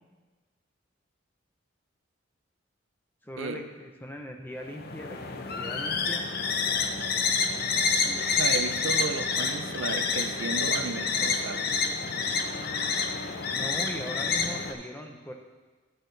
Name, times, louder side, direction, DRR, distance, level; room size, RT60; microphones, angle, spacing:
voice 1, 3.2-6.2 13.5-15.3, equal, 10° left, 3 dB, 0.7 m, -40 dB
sound 1, 4.7-14.7, left 4 dB, 50° left, 0.6 m, -28 dB
voice 2, 8.0-11.7, right 4 dB, 70° right, 9 dB, 0.5 m, -34 dB
11.5 x 6.4 x 3.3 m, 1.3 s
head